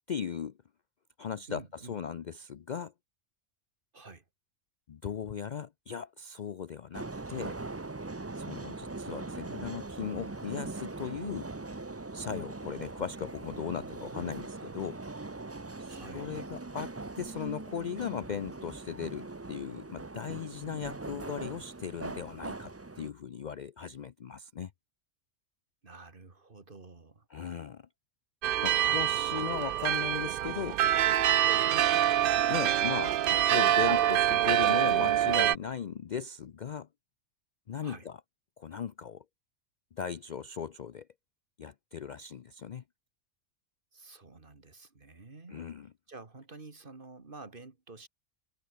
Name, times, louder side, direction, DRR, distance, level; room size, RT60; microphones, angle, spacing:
voice 1, 0.1-0.5 1.2-2.9 4.9-7.6 8.3-11.5 12.1-15.0 15.8-22.7 23.0-24.7 27.3-27.8 28.6-30.9 32.5-36.9 37.7-38.2 38.6-39.2 39.9-41.1 41.6-42.8 45.5-45.9, left 7 dB, 50° left, 0.6 m, -38 dB
voice 2, 1.5-2.0 3.9-4.2 13.6-14.4 15.8-16.3 25.8-27.3 28.8-29.1 31.7-32.0 37.8-38.1 43.9-45.6 46.1-48.1, right 3 dB, 45° right, 2.3 m, -49 dB
sound 1, 6.9-23.1, right 3 dB, 20° right, 0.4 m, -41 dB
sound 2, 28.4-35.6, right 11 dB, 60° right, 0.6 m, -26 dB
omnidirectional pair, 1.3 m